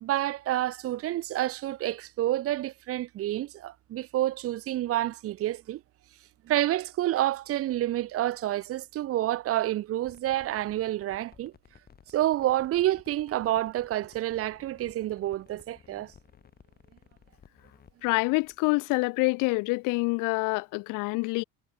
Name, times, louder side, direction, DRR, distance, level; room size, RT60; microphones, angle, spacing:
voice 1, 0.0-5.8 6.4-11.5 12.1-16.1, right 14 dB, 45° right, 1.3 m, -28 dB
sound 1, 10.0-18.6, left 7 dB, 30° left, 6.8 m, -57 dB
voice 2, 18.0-21.4, left 26 dB, 70° left, 0.8 m, -26 dB
cardioid pair, 155°, 32 cm